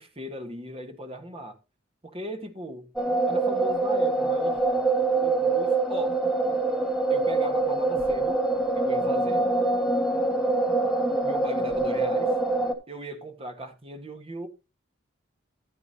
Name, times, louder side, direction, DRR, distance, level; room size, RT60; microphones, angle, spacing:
voice 1, 0.0-1.6 2.0-2.9 3.3-4.6 5.2-6.2 7.1-8.4 8.8-9.4 11.2-12.3 12.9-14.5, right 1 dB, 30° right, 1.4 m, -38 dB
sound 1, 3.0-12.7, right 2 dB, 5° right, 1.3 m, -24 dB
13.5 x 8.4 x 2.8 m
head